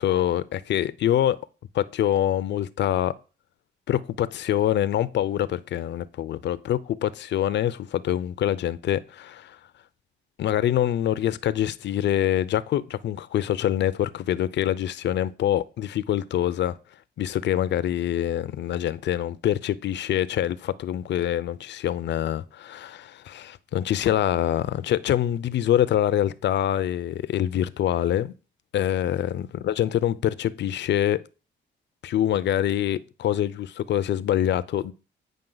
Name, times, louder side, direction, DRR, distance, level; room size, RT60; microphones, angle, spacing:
voice 1, 0.0-1.4 1.7-3.1 3.9-9.6 10.4-16.8 17.2-28.3 28.7-31.2 32.0-34.9, left 11 dB, 60° left, 0.6 m, -25 dB
9.0 x 5.3 x 3.9 m
cardioid pair, 90°, 20 cm